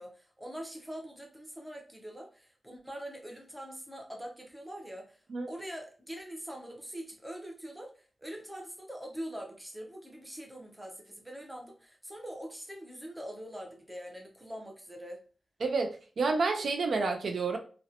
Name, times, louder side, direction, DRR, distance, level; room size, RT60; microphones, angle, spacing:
voice 1, 0.0-15.2, equal, 5° right, 0.5 m, -43 dB
voice 2, 15.6-17.6, right 4 dB, 70° right, 0.3 m, -29 dB
2.6 x 2.0 x 2.6 m
wide cardioid pair, 145°, 0 cm